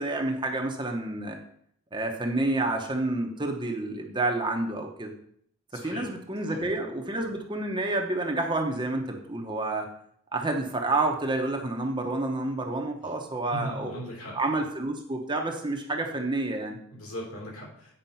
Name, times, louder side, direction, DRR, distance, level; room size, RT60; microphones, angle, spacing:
voice 1, 0.0-1.4 1.9-5.1 5.7-9.9 10.3-14.0 14.3-16.8, right 2 dB, 20° right, 2 dB, 0.9 m, -29 dB
voice 2, 5.7-6.1 6.5-6.7 13.5-14.3 16.9-17.9, equal, 70° left, -3 dB, 3.5 m, -38 dB
9.2 x 5.0 x 5.6 m, 0.68 s
head